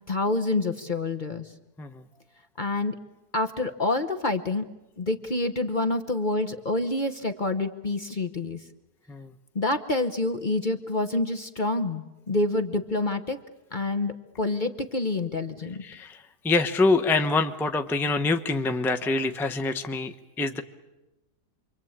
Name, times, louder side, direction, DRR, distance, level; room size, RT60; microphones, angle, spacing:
voice 1, 0.1-1.5 2.6-3.0 3.3-4.6 5.0-8.6 9.5-13.4 13.7-15.8, left 2 dB, 35° left, 7 dB, 1.0 m, -27 dB
voice 2, 15.8-20.6, left 3 dB, ahead, 7 dB, 0.8 m, -25 dB
27.5 x 24.0 x 8.8 m, 1.0 s
omnidirectional pair, 1.8 m